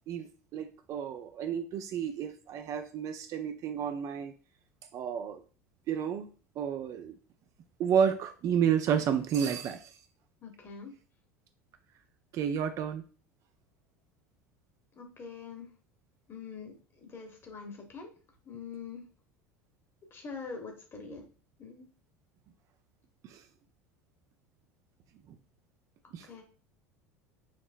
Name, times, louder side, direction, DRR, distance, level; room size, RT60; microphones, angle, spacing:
voice 1, 0.1-4.3 4.9-5.4 5.9-6.3 6.6-7.1 7.8-9.9 12.3-13.0 23.3-23.4 26.1-26.3, right 8 dB, 40° right, 7 dB, 0.4 m, -31 dB
voice 2, 10.4-10.9 15.0-15.7 16.3-16.7 17.0-18.1 18.4-19.0 20.1-21.2 21.6-21.9 26.3-26.4, left 5 dB, 30° left, 3 dB, 1.2 m, -43 dB
5.7 x 2.9 x 2.4 m, 0.38 s
figure-of-eight pair, 70°, 8 cm